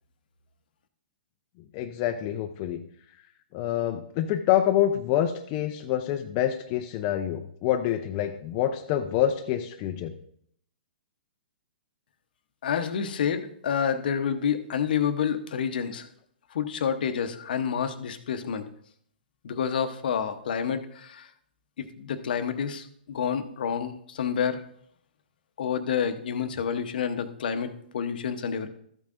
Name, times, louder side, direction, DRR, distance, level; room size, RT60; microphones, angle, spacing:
voice 1, 1.7-2.8 3.5-10.1, left 11 dB, 35° left, 5 dB, 0.6 m, -26 dB
voice 2, 12.6-16.1 16.5-18.6 19.4-21.3 21.8-24.6 25.6-28.7, left 7 dB, 65° left, 9 dB, 0.9 m, -29 dB
13.5 x 8.5 x 2.5 m, 0.67 s
hypercardioid pair, 130°, 5 cm